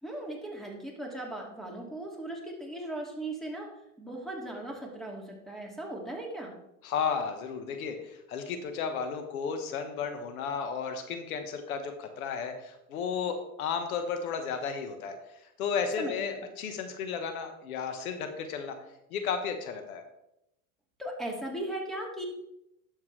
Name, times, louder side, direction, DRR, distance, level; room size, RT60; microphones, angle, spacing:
voice 1, 0.0-3.7 4.0-6.5 16.0-16.4 21.0-22.2, right 1 dB, ahead, -1 dB, 2.4 m, -38 dB
voice 2, 6.8-15.2 15.6-18.8 19.1-20.0, left 6 dB, 85° left, 6 dB, 1.5 m, -33 dB
11.5 x 7.3 x 3.3 m, 0.84 s
supercardioid pair, 110°, 42 cm